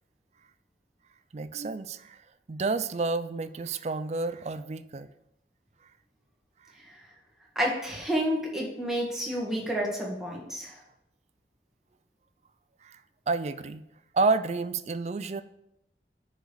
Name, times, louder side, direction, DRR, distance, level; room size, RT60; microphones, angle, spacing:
voice 1, 1.3-2.2 2.5-5.1 12.8-13.0 13.3-13.8 14.1-15.4, right 3 dB, 40° right, 14 dB, 0.4 m, -30 dB
voice 2, 7.6-10.8, equal, 5° right, -3 dB, 1.8 m, -30 dB
6.4 x 5.1 x 6.9 m, 0.83 s
head